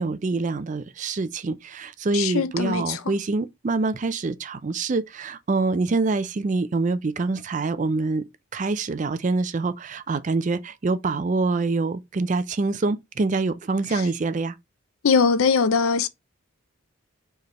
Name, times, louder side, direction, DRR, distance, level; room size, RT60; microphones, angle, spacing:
voice 1, 0.0-8.3 8.5-14.5, right 3 dB, 35° right, 0.4 m, -25 dB
voice 2, 2.1-3.0 15.0-16.1, left 5 dB, 80° left, 0.5 m, -21 dB
4.5 x 3.3 x 3.0 m
head